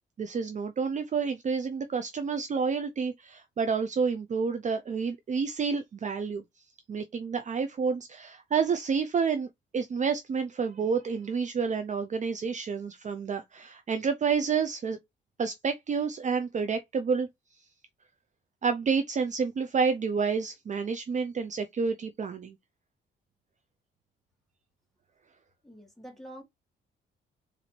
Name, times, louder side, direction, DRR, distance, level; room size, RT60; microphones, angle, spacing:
voice 1, 0.2-6.4 6.9-9.5 9.7-15.0 15.4-17.3 18.6-22.5, right 5 dB, 40° right, 0.5 m, -29 dB
voice 2, 25.6-26.4, right 1 dB, ahead, 1.6 m, -46 dB
4.0 x 2.7 x 4.3 m
cardioid pair, 90°, 20 cm